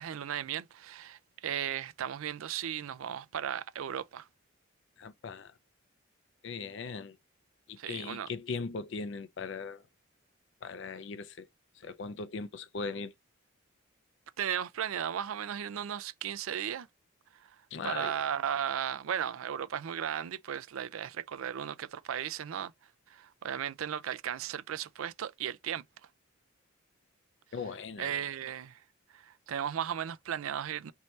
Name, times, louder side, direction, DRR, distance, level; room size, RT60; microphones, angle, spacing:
voice 1, 0.0-4.3 7.8-8.3 14.4-16.9 17.8-22.7 23.1-25.8 28.0-28.8 29.1-30.9, right 9 dB, 80° right, 0.4 m, -35 dB
voice 2, 5.0-5.5 6.4-7.2 7.7-9.8 10.6-11.5 11.8-13.1 17.7-18.1 27.5-28.1, left 4 dB, 60° left, 0.4 m, -39 dB
3.2 x 2.7 x 4.3 m
head